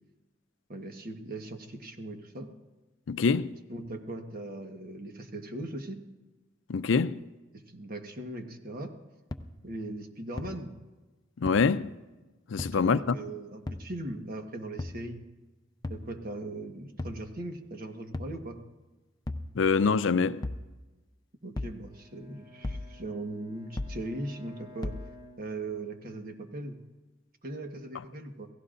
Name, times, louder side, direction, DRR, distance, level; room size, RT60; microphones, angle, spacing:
voice 1, 0.7-2.5 3.2-3.3 3.7-6.0 7.5-8.9 9.6-10.7 12.6-15.2 15.9-18.6 21.4-25.0 25.4-26.8 27.4-28.5, right 2 dB, 50° right, 1.3 m, -39 dB
voice 2, 3.1-3.6 6.7-7.1 11.4-11.9 12.5-13.2 19.6-20.4, left 5 dB, 70° left, 0.5 m, -25 dB
sound 1, 9.3-9.4 10.4-10.5 11.5-11.6 12.6-12.7 13.7-13.8 14.8-15.0 15.8-16.1 17.0-17.2 18.1-18.4 19.3-19.5 20.4-20.6 21.6-21.8 22.6-22.9 23.8-24.0 24.8-25.0, left 2 dB, 20° left, 0.6 m, -35 dB
Bowed string instrument, 21.8-26.2, left 1 dB, 25° right, 2.6 m, -54 dB
28.0 x 16.5 x 2.6 m
head